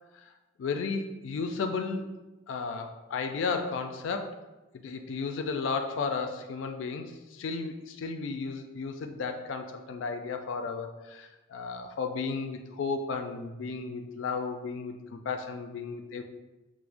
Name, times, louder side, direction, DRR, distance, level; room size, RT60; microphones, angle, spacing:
voice 1, 0.6-2.2 2.5-4.4 4.7-7.0 7.3-16.2, left 4 dB, 80° left, 6 dB, 0.3 m, -34 dB
4.5 x 2.0 x 2.5 m, 1.1 s
head